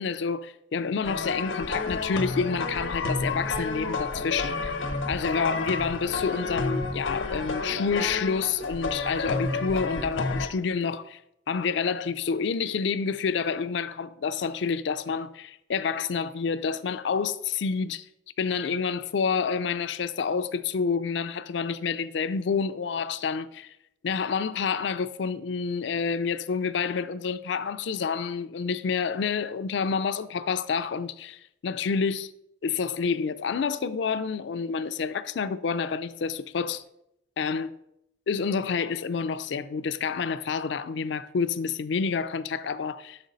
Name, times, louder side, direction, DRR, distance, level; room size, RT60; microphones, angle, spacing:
voice 1, 0.0-4.7 5.1-11.2 11.5-18.1 18.4-23.7 24.0-32.3 32.6-36.8 37.4-37.7 38.3-43.2, left 5 dB, 65° left, 0.4 m, -28 dB
sound 1, 1.0-10.5, left 3 dB, 90° left, 1.0 m, -30 dB
7.1 x 5.1 x 4.0 m
head